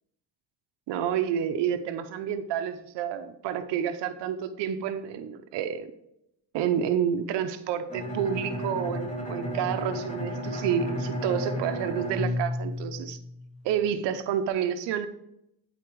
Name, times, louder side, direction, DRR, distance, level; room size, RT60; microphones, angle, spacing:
voice 1, 0.9-5.9 6.5-13.2 13.6-15.1, right 9 dB, 90° right, 10 dB, 0.8 m, -29 dB
Bowed string instrument, 7.9-13.6, equal, 15° left, 2.5 m, -32 dB
12.0 x 4.2 x 4.6 m, 0.78 s
cardioid pair, 85°, 42 cm